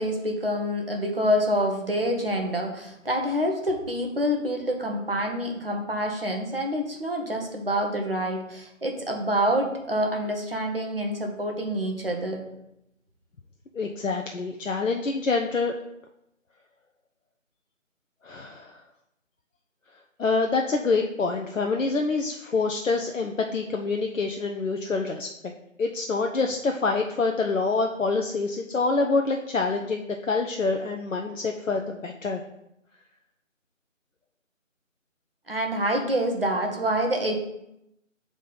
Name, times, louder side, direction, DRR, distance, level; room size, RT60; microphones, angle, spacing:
voice 1, 0.0-12.4 35.5-37.4, equal, 45° right, 2 dB, 1.0 m, -27 dB
voice 2, 13.7-15.7 18.2-18.8 20.2-25.3 25.8-32.4, left 4 dB, 70° left, 3 dB, 0.6 m, -26 dB
7.0 x 3.6 x 3.9 m, 0.83 s
figure-of-eight pair, 170°, 40 cm